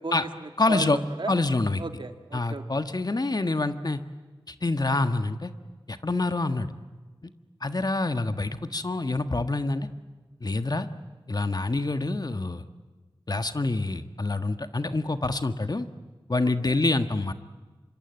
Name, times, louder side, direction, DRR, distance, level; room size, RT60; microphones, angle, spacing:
voice 1, 0.0-1.3 1.8-2.6 16.6-16.8, right 3 dB, 70° right, 7 dB, 2.1 m, -35 dB
voice 2, 0.6-1.0 1.3-1.8 2.3-4.0 4.5-5.5 5.9-6.7 7.2-7.3 7.6-9.9 10.4-10.9 11.3-12.6 13.3-15.9 16.3-17.3, left 2 dB, 50° left, 9 dB, 1.5 m, -26 dB
26.5 x 25.0 x 9.0 m, 1.3 s
wide cardioid pair, 60°, 9 cm